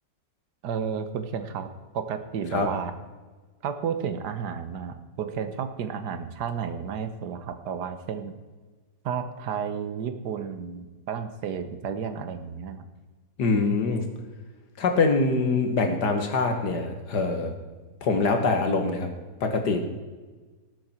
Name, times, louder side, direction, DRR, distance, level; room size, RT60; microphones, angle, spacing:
voice 1, 0.6-1.7 1.9-2.9 3.6-8.3 9.0-12.8, right 7 dB, 75° right, 9 dB, 1.5 m, -32 dB
voice 2, 13.4-14.0 14.8-17.5 18.0-19.1 19.4-19.8, left 3 dB, 80° left, 5 dB, 2.1 m, -24 dB
19.0 x 7.7 x 4.4 m, 1.3 s
omnidirectional pair, 1.8 m